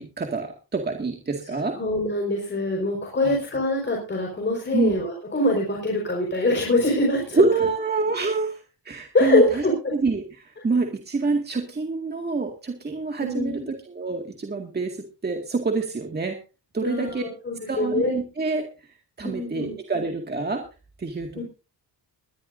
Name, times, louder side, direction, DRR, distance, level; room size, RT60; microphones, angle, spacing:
voice 1, 0.0-1.8 3.2-3.4 4.7-4.9 7.3-8.6 8.9-9.6 9.9-15.0 15.2-16.4 16.7-17.2 17.7-18.6 19.2-20.6 21.0-21.4, right 4 dB, 25° right, 2 dB, 2.1 m, -26 dB
voice 2, 1.7-7.4 9.1-9.7 13.2-13.7 16.8-18.1 19.2-19.8 21.3-21.4, left 2 dB, 25° left, -1 dB, 4.9 m, -24 dB
21.5 x 12.5 x 2.7 m, 0.33 s
wide cardioid pair, 165°, 42 cm